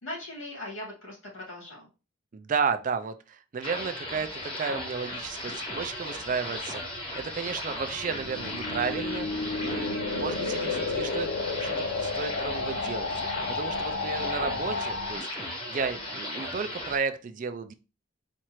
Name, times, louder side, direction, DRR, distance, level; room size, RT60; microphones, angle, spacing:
voice 1, 0.0-1.9 10.3-10.6, left 1 dB, 90° left, -2 dB, 2.3 m, -40 dB
voice 2, 2.3-13.1 13.5-17.7, right 5 dB, 40° right, 9 dB, 0.4 m, -33 dB
sound 1, 3.6-17.0, left 1 dB, 30° left, 1.1 m, -37 dB
sound 2, 5.9-15.2, left 3 dB, 70° left, 0.5 m, -32 dB
4.2 x 2.4 x 3.0 m, 0.31 s
head